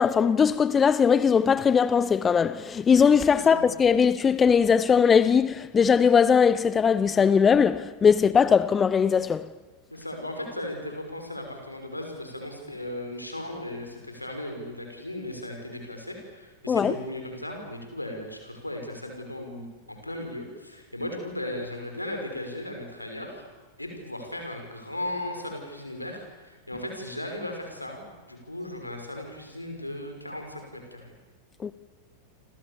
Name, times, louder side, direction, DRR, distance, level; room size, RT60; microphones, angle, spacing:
voice 1, 0.0-9.5 16.7-16.9 31.6-31.7, left 6 dB, 20° left, 0.8 m, -20 dB
voice 2, 3.3-3.6 9.9-23.5 23.8-31.1, left 1 dB, 85° left, 6.2 m, -36 dB
29.0 x 26.0 x 7.2 m
figure-of-eight pair, 90°, 0 cm